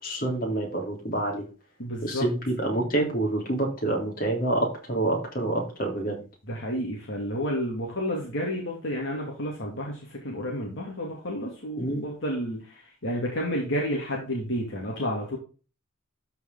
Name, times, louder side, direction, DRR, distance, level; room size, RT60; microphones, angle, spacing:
voice 1, 0.0-1.4 2.0-6.2 11.8-12.0, right 2 dB, 45° left, 0 dB, 3.5 m, -27 dB
voice 2, 1.8-2.3 6.4-15.4, equal, 60° left, -2 dB, 2.5 m, -31 dB
12.5 x 5.0 x 3.9 m, 0.35 s
head